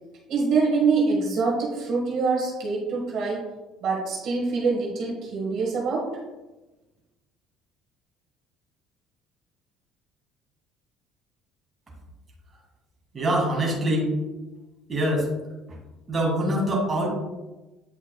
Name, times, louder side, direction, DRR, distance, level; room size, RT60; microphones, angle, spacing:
voice 1, 0.3-3.5 3.8-6.2, right 4 dB, 50° right, -2 dB, 1.5 m, -25 dB
voice 2, 13.1-14.1 14.9-15.3 15.7-15.8 16.1-17.1, right 1 dB, 20° right, -3 dB, 1.9 m, -24 dB
8.8 x 5.5 x 2.3 m, 1.1 s
cardioid pair, 160°, 0 cm